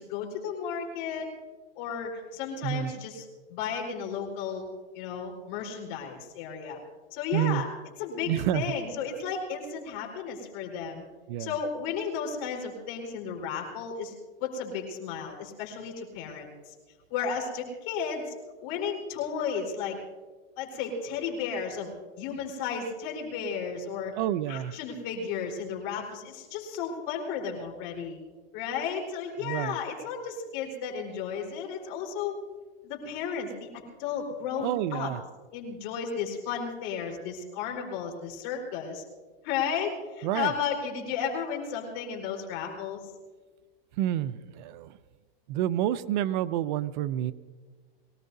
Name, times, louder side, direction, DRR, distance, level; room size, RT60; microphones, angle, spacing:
voice 1, 0.0-1.3 1.8-4.6 4.9-6.8 7.1-7.7 8.0-11.0 11.4-14.1 14.4-16.7 17.1-18.3 18.6-20.0 20.6-24.1 24.5-28.2 28.5-32.4 32.8-35.1 35.5-39.0 39.4-43.0, left 6 dB, 50° left, 1 dB, 4.3 m, -33 dB
voice 2, 7.3-7.6 8.3-8.7 11.3-11.5 24.2-24.7 29.4-29.8 34.6-35.2 40.2-40.5 44.0-44.9 45.5-47.3, right 12 dB, 50° right, 14 dB, 0.6 m, -28 dB
23.0 x 18.0 x 2.7 m, 1.4 s
supercardioid pair, 135°, 30 cm